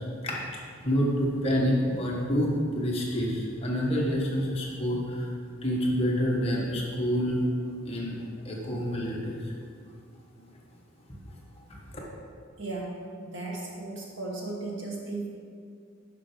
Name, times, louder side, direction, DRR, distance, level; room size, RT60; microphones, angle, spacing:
voice 1, 0.8-5.3 5.6-7.4 7.8-8.2 8.4-9.5, equal, 30° left, -3 dB, 1.2 m, -27 dB
voice 2, 12.6-15.3, right 2 dB, 60° right, -2 dB, 1.5 m, -36 dB
7.4 x 5.9 x 4.9 m, 2.2 s
head